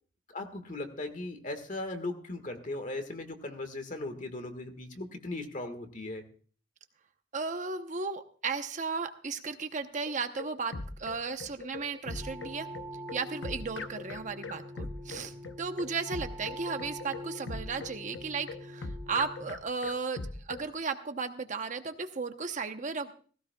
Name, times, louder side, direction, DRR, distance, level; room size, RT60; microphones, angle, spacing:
voice 1, 0.3-6.2, left 2 dB, 45° left, 7 dB, 1.6 m, -38 dB
voice 2, 7.3-10.7 11.0-12.7 13.1-20.2 20.4-23.1, right 4 dB, 45° right, 8 dB, 0.8 m, -35 dB
sound 1, 10.1-20.7, left 3 dB, 75° left, 0.9 m, -41 dB
sound 2, 12.1-19.4, equal, 20° right, 1.4 m, -44 dB
17.0 x 16.5 x 2.3 m, 0.43 s
head